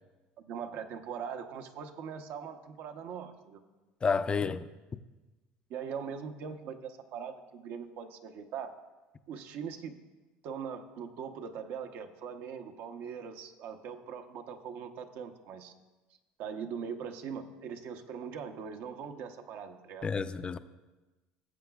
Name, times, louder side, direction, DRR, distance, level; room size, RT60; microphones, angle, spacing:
voice 1, 0.4-3.6 5.7-8.7 9.3-10.0 10.4-15.7 16.4-20.1, right 7 dB, 65° right, 0.9 m, -41 dB
voice 2, 4.0-4.7 20.0-20.6, left 5 dB, 25° left, 0.5 m, -30 dB
18.5 x 7.7 x 2.4 m
supercardioid pair, 95°, 4 cm